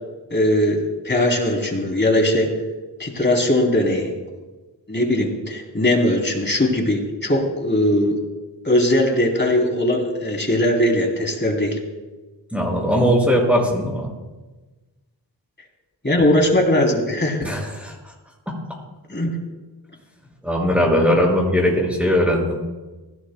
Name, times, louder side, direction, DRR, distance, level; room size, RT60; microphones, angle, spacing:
voice 1, 0.3-2.5 3.0-4.1 4.9-8.2 8.6-11.8 16.0-17.5 19.1-19.3, left 1 dB, 25° left, 1 dB, 3.1 m, -19 dB
voice 2, 12.5-14.1 17.4-17.9 20.4-22.6, equal, 5° right, -2 dB, 5.9 m, -19 dB
23.5 x 17.0 x 2.2 m, 1.2 s
wide cardioid pair, 80°, 43 cm